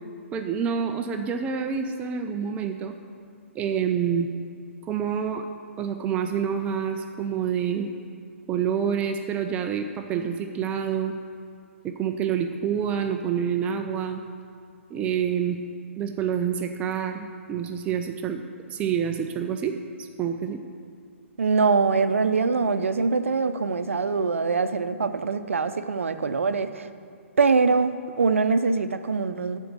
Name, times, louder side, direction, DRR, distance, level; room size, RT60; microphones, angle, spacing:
voice 1, 0.3-2.9 3.5-4.3 4.8-5.5 5.8-7.9 8.5-11.1 11.8-14.2 14.9-15.6 16.0-18.4 18.7-19.8 20.2-20.6, right 7 dB, 15° right, 5 dB, 0.4 m, -27 dB
voice 2, 21.4-26.9 27.4-29.6, right 4 dB, 70° right, 10 dB, 0.6 m, -23 dB
13.5 x 4.5 x 6.7 m, 2.3 s
figure-of-eight pair, 125°, 7 cm